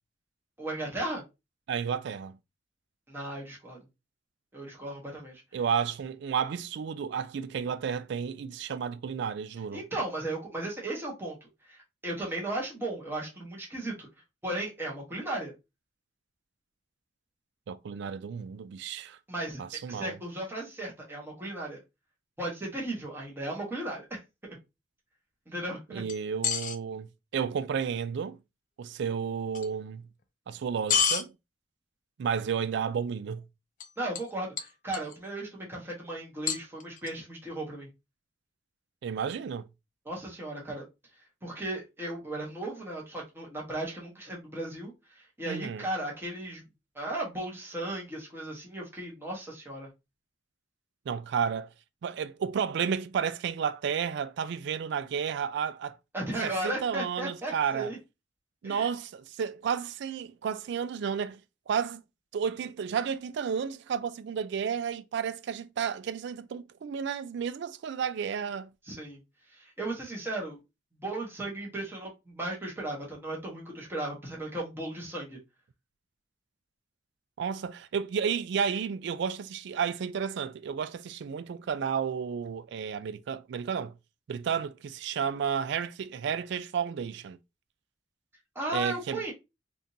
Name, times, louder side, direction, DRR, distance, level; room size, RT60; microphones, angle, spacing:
voice 1, 0.6-1.2 3.1-3.8 4.5-5.4 9.7-14.1 14.4-15.5 19.3-19.6 19.9-21.8 22.4-24.2 25.5-26.0 34.0-37.9 40.0-40.8 41.4-46.6 46.9-49.9 56.1-58.0 58.6-58.9 68.8-69.2 69.5-70.6 70.9-75.4 88.5-89.3, right 1 dB, 10° right, 1.2 m, -36 dB
voice 2, 1.7-2.4 5.5-9.8 17.7-19.2 19.6-20.2 25.9-28.4 28.8-30.1 30.5-31.3 32.2-33.4 39.0-39.7 45.5-45.9 51.1-51.7 52.0-56.0 56.4-57.9 58.6-61.4 61.7-62.0 62.3-68.7 77.4-83.9 84.3-87.4 88.7-89.2, right 7 dB, 65° right, 0.3 m, -32 dB
sound 1, 26.1-26.8 29.5-29.7 30.9-31.2 33.8-33.9 34.2-34.3 34.6-35.2 36.5-37.1, left 7 dB, 45° left, 0.4 m, -28 dB
3.6 x 2.5 x 2.7 m
head